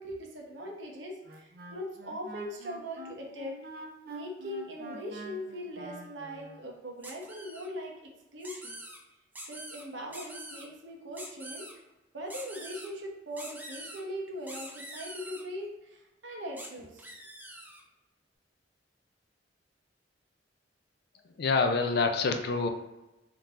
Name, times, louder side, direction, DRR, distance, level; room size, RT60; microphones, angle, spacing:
voice 1, 0.0-3.5 4.1-7.9 8.3-8.8 9.5-11.8 12.1-17.1, equal, 80° right, 0 dB, 0.9 m, -40 dB
Wind instrument woodwind instrument, 1.2-6.6, right 2 dB, 55° right, 0.6 m, -46 dB
sound 1, 7.0-7.7 8.4-9.0 9.3-9.8 10.1-10.6 11.1-11.7 12.3-12.9 13.4-14.0 14.5-15.4 16.6-16.7 17.0-17.8, right 1 dB, 10° right, 0.6 m, -44 dB
voice 2, 21.4-22.7, left 4 dB, 60° left, 6 dB, 0.4 m, -26 dB
3.7 x 2.8 x 3.6 m, 1.0 s
head